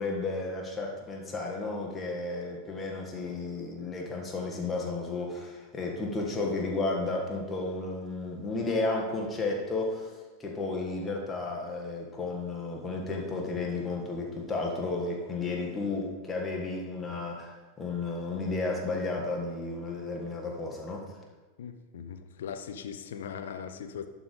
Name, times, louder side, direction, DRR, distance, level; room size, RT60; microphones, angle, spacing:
voice 1, 0.0-10.1 10.4-21.0, left 3 dB, 15° left, -2 dB, 1.5 m, -33 dB
voice 2, 21.6-24.1, left 7 dB, 60° left, 8 dB, 0.6 m, -39 dB
11.5 x 3.9 x 4.9 m, 1.3 s
figure-of-eight pair, 90°, 0 cm